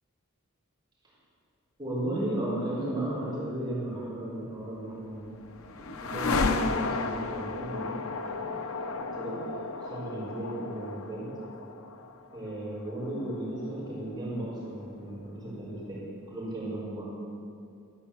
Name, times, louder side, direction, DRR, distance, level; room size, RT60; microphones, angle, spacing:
voice 1, 1.8-5.2 5.8-8.6 8.9-9.4 9.8-11.3 12.3-16.0 16.3-17.1, right 1 dB, 20° right, -8 dB, 4.3 m, -35 dB
sound 1, 4.8-14.8, left 4 dB, 90° left, 0.7 m, -34 dB
13.0 x 9.9 x 7.1 m, 2.5 s
head